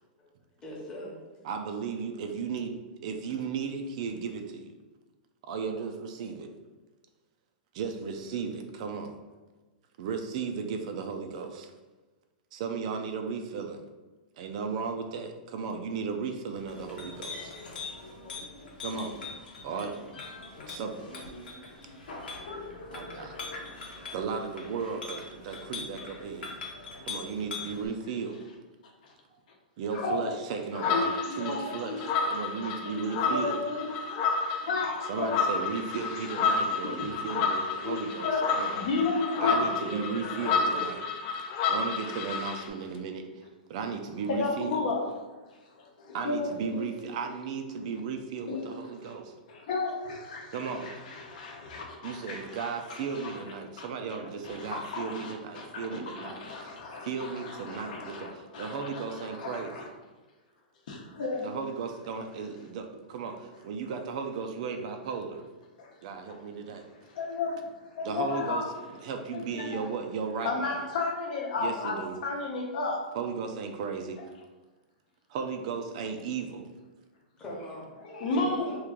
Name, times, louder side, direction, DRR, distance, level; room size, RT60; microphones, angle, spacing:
voice 1, 0.6-1.1 39.5-41.2 77.4-77.9 78.3-78.8, equal, 15° left, -4 dB, 0.9 m, -40 dB
voice 2, 1.4-4.7 5.4-6.5 7.7-9.1 10.0-11.7 12.5-13.8 14.4-17.5 18.8-19.2 19.6-20.0 20.7-21.2 22.9-23.4 24.1-26.5 27.1-28.4 29.8-33.6 35.1-38.3 38.6-38.7 39.4-41.0 41.7-43.4 43.7-44.7 46.1-49.3 50.5-50.9 52.0-56.7 57.0-59.8 61.4-65.4 66.0-66.8 68.0-68.6 69.0-70.8 71.6-72.2 73.1-74.3 75.3-76.7, right 5 dB, 50° right, 5 dB, 0.4 m, -35 dB
Chink clink, 16.5-27.9, left 4 dB, 90° left, 0.9 m, -42 dB
voice 3, 22.4-24.1 29.0-29.1 29.9-30.4 30.9-32.0 32.9-33.9 34.2-35.4 36.8-37.4 37.8-39.7 41.6-41.7 44.3-45.1 45.8-46.9 48.5-49.1 49.5-53.4 53.8-59.9 60.9-61.5 65.8-65.9 66.3-66.4 67.1-67.6 67.9-68.7 69.3-69.9 70.4-73.0 78.0-78.8, left 3 dB, 60° left, 1 dB, 0.7 m, -34 dB
sound 1, 30.7-42.7, left 5 dB, 35° left, 0.4 m, -30 dB
3.0 x 2.4 x 3.6 m, 1.2 s
hypercardioid pair, 155°, 5 cm